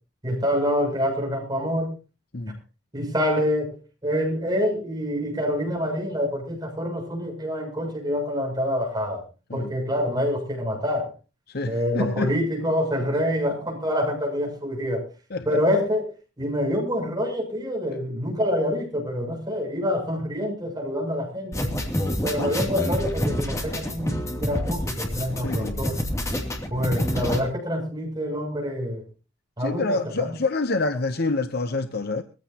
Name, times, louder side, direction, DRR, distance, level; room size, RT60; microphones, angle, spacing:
voice 1, 0.2-1.9 2.9-9.2 9.5-11.1 11.6-15.0 15.4-21.7 22.2-26.0 26.7-29.0 29.6-30.3, equal, 20° right, 7.6 m, -26 dB
voice 2, 11.5-12.3 15.3-15.4 25.4-25.8 29.6-32.2, left 3 dB, 50° left, 1.0 m, -27 dB
sound 1, 21.5-27.4, equal, 15° left, 2.8 m, -27 dB
22.0 x 15.5 x 2.9 m
head